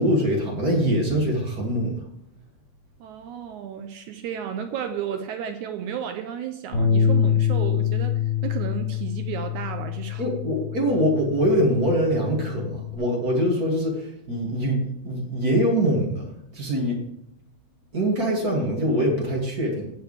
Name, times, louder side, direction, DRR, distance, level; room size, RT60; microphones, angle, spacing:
voice 1, 0.0-2.0 10.2-16.2 16.5-17.0 17.9-19.9, equal, 30° right, -1 dB, 2.1 m, -23 dB
voice 2, 3.0-10.3, right 8 dB, 75° right, 7 dB, 1.9 m, -33 dB
Bass guitar, 6.7-13.0, left 8 dB, 35° left, 4.1 m, -25 dB
17.5 x 6.5 x 3.3 m, 0.74 s
omnidirectional pair, 3.8 m